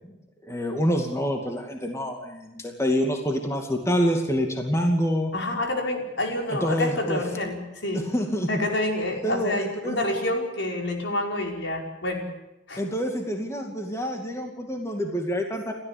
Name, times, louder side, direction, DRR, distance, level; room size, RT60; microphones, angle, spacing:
voice 1, 0.4-5.3 6.5-7.2 8.0-8.5 9.2-10.0 12.8-15.7, equal, 15° left, 3 dB, 2.4 m, -26 dB
voice 2, 5.3-8.1 8.5-12.3 12.7-12.8, left 1 dB, 70° left, 2 dB, 5.4 m, -28 dB
30.0 x 14.0 x 8.7 m, 0.94 s
head